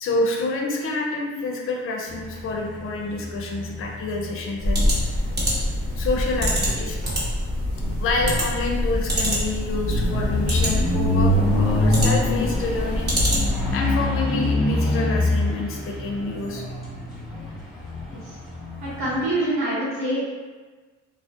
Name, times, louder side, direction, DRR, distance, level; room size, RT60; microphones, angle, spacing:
voice 1, 0.0-4.9 5.5-5.6 6.0-7.0 8.0-13.1 13.7-16.6, left 3 dB, 45° left, 0 dB, 0.5 m, -28 dB
sound 1, 2.1-19.3, left 1 dB, ahead, 0.8 m, -26 dB
sound 2, 4.6-13.7, equal, 35° right, 0.9 m, -25 dB
voice 2, 18.8-20.2, right 1 dB, 65° right, -9 dB, 1.0 m, -25 dB
2.3 x 2.0 x 2.6 m, 1.3 s
cardioid pair, 90°, 30 cm